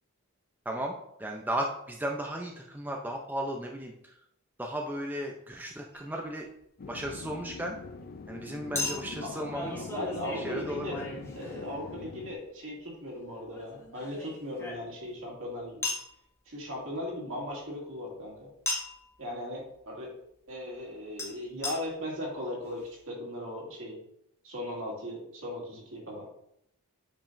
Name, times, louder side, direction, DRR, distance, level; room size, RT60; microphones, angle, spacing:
voice 1, 0.7-4.1 4.6-6.5 6.9-7.8 8.3-9.9 10.4-11.1, right 1 dB, 10° right, 1 dB, 0.5 m, -35 dB
Chink clink, 5.9-6.1 8.8-11.9 13.5-15.2 15.8-16.1 18.7-19.0 21.2-21.3 21.6-21.8 22.4-22.5 22.7-22.8, left 2 dB, 10° left, 1.3 m, -36 dB
sound 1, 6.8-12.3, left 3 dB, 45° left, 0.4 m, -43 dB
voice 2, 9.8-11.0 11.3-15.9 16.5-18.5 19.2-20.1 20.5-24.0 24.4-26.2, left 1 dB, 65° right, -3 dB, 2.4 m, -38 dB
8.7 x 5.2 x 2.6 m, 0.77 s
head